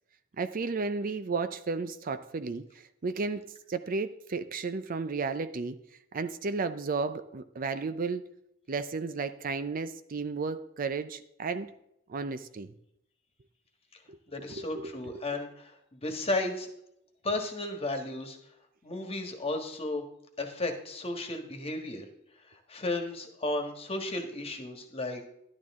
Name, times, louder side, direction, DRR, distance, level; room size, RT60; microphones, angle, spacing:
voice 1, 0.4-2.7 3.0-5.8 6.1-8.3 8.7-11.7 12.1-12.7 14.1-14.9, right 4 dB, 45° right, 11 dB, 0.5 m, -33 dB
voice 2, 14.3-16.7 17.2-18.4 18.8-20.0 20.4-22.1 22.5-25.2, left 2 dB, 30° left, 5 dB, 1.5 m, -34 dB
12.0 x 11.5 x 3.6 m, 0.77 s
head